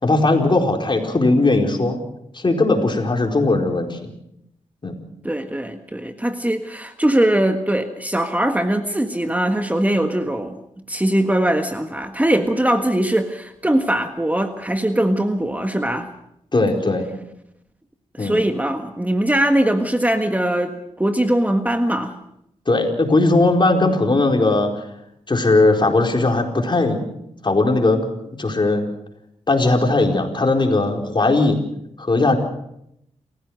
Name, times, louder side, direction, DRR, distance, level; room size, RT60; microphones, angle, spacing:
voice 1, 0.0-2.0 2.3-4.1 4.8-5.0 16.5-17.1 18.2-18.4 22.7-24.7 25.3-27.0 27.4-28.0 28.4-28.9 29.5-31.6 32.0-32.4, left 2 dB, 40° left, 2 dB, 4.5 m, -18 dB
voice 2, 5.2-10.6 10.9-16.1 18.1-22.1, right 1 dB, 10° right, 6 dB, 1.6 m, -21 dB
28.5 x 15.5 x 6.5 m, 0.78 s
cardioid pair, 65°, 12 cm